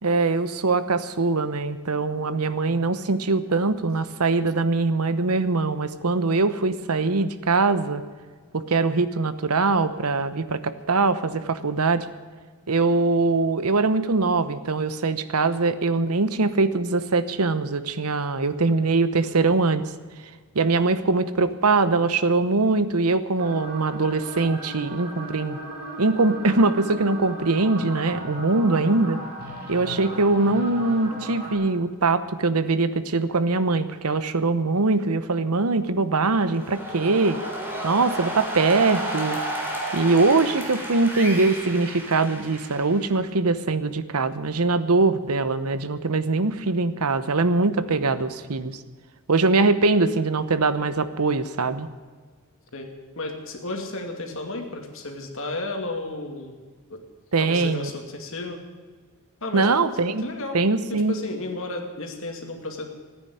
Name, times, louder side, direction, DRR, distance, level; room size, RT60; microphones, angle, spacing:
voice 1, 0.0-8.0 8.5-12.1 12.7-19.8 20.5-25.6 26.0-29.2 29.7-37.4 37.8-39.4 39.9-48.8 49.3-51.9 57.3-57.9 59.5-60.2 60.5-61.1, right 3 dB, 85° right, 13 dB, 0.9 m, -22 dB
voice 2, 2.1-2.4 52.7-52.9 53.2-56.5 56.9-57.0 57.4-58.6 59.4-59.7 60.2-60.6 60.9-62.8, left 2 dB, 65° left, 3 dB, 2.5 m, -33 dB
sound 1, 23.4-31.5, right 1 dB, 45° right, 5.1 m, -37 dB
sound 2, 36.3-43.2, right 1 dB, 10° right, 3.4 m, -32 dB
14.5 x 9.9 x 9.2 m, 1.5 s
head